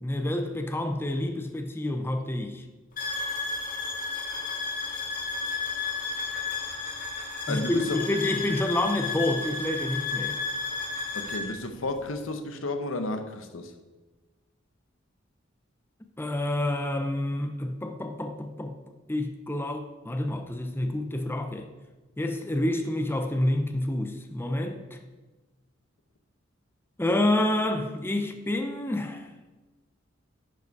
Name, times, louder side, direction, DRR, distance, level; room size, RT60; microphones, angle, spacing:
voice 1, 0.0-2.6 7.5-10.4 16.2-18.7 19.1-21.7 22.2-25.0 27.0-29.3, left 1 dB, 10° left, 6 dB, 0.6 m, -28 dB
sound 1, 3.0-11.5, left 4 dB, 45° left, 2.0 m, -32 dB
voice 2, 7.5-8.0 11.1-13.7, left 2 dB, 85° left, 7 dB, 0.9 m, -32 dB
11.0 x 5.1 x 4.7 m, 1.2 s
head